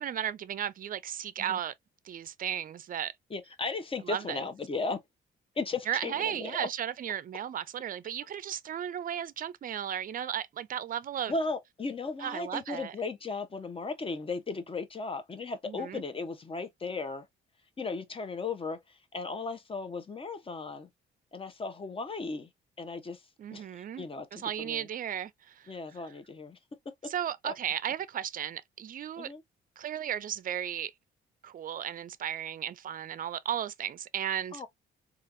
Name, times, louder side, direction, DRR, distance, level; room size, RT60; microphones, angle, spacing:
voice 1, 0.0-1.7 2.0-3.1 4.1-4.4 5.9-11.3 12.2-12.9 15.7-16.0 23.4-24.0 24.3-25.7 27.1-29.3 29.8-30.9 31.4-34.6, right 10 dB, 45° right, 0.4 m, -35 dB
voice 2, 3.3-5.0 5.6-6.7 11.3-17.3 17.8-20.9 21.3-22.5 22.8-24.9 25.7-26.6 26.8-27.1 27.4-27.5 29.2-29.4 34.5-34.7, left 3 dB, 25° left, 0.8 m, -36 dB
3.3 x 2.4 x 2.6 m
cardioid pair, 90°, 20 cm